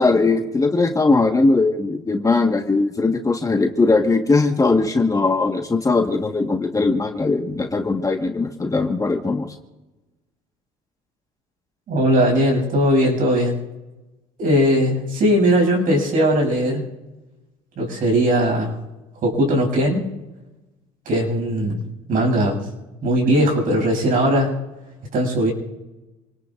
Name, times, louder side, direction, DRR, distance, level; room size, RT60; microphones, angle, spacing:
voice 1, 0.0-9.5, left 3 dB, 20° left, 4 dB, 1.5 m, -19 dB
voice 2, 11.9-13.6 14.4-16.8 17.8-18.8 19.2-20.0 21.1-21.8 22.1-22.6 23.0-24.5 25.1-25.5, equal, 55° right, 0 dB, 7.5 m, -19 dB
28.5 x 19.5 x 2.6 m, 1.1 s
hypercardioid pair, 75°, 17 cm